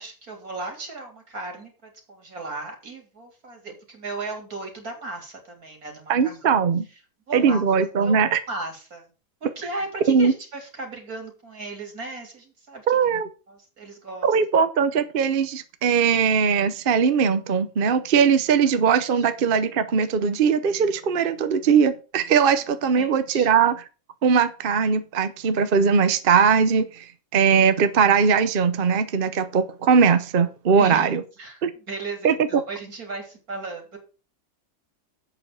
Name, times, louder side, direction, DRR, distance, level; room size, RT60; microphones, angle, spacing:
voice 1, 0.0-6.4 7.3-7.6 8.0-8.2 8.5-9.1 9.4-13.0 13.5-14.3 19.2-19.3 22.8-23.5 30.8-31.1 31.4-31.6 31.9-34.0, right 3 dB, 85° right, 2 dB, 3.8 m, -36 dB
voice 2, 6.1-6.8 7.3-8.4 10.1-10.3 12.9-13.3 14.2-23.8 24.2-31.2 31.6-31.7 32.2-32.3, right 6 dB, 45° right, 11 dB, 0.8 m, -20 dB
8.2 x 6.2 x 6.8 m, 0.35 s
omnidirectional pair, 1.5 m